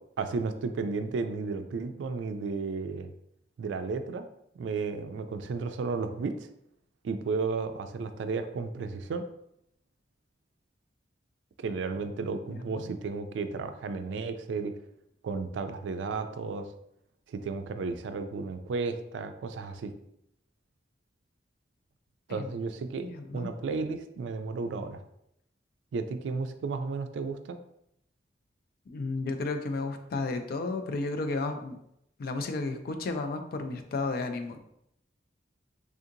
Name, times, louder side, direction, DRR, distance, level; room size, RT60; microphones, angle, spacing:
voice 1, 0.2-3.1 3.6-4.3 4.6-6.5 7.0-9.3 11.6-14.7 15.2-16.7 17.3-19.9 22.3-23.1 23.3-25.0 25.9-27.6, right 4 dB, 75° right, 9 dB, 0.3 m, -33 dB
voice 2, 12.5-12.9 22.3-22.5 23.0-23.5 28.9-31.8 32.2-34.6, left 3 dB, 55° left, 7 dB, 0.4 m, -33 dB
3.6 x 2.7 x 2.5 m, 0.77 s
head